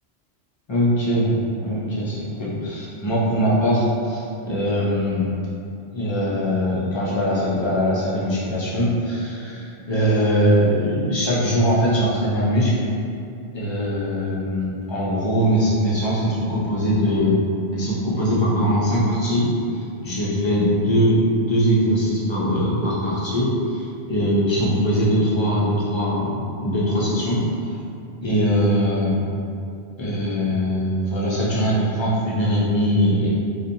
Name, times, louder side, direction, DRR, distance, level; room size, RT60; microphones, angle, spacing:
voice 1, 0.7-1.3 1.6-5.3 5.9-12.7 13.5-17.4 17.7-26.3 26.6-27.4 28.2-29.2 30.0-33.3, equal, 45° left, -8 dB, 0.3 m, -21 dB
2.6 x 2.1 x 2.6 m, 2.5 s
omnidirectional pair, 1.1 m